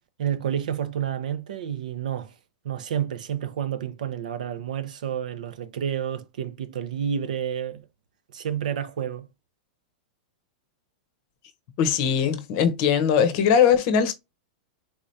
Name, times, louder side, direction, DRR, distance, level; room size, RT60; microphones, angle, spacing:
voice 1, 0.2-2.3 2.6-7.9 8.3-9.3, right 9 dB, 80° right, 0.7 m, -30 dB
voice 2, 11.8-14.1, left 7 dB, 45° left, 0.7 m, -20 dB
3.7 x 3.1 x 2.7 m
supercardioid pair, 150°, 4 cm